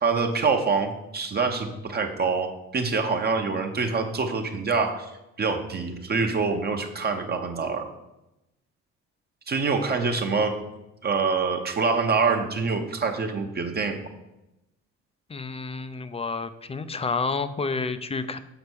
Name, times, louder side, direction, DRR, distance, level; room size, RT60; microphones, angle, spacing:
voice 1, 0.0-5.1 5.4-7.8 9.5-10.6 11.0-14.0, right 4 dB, 35° right, 4 dB, 0.9 m, -25 dB
voice 2, 15.3-18.4, left 4 dB, 20° left, 12 dB, 0.5 m, -30 dB
7.0 x 4.3 x 6.2 m, 0.94 s
cardioid pair, 100°, 30 cm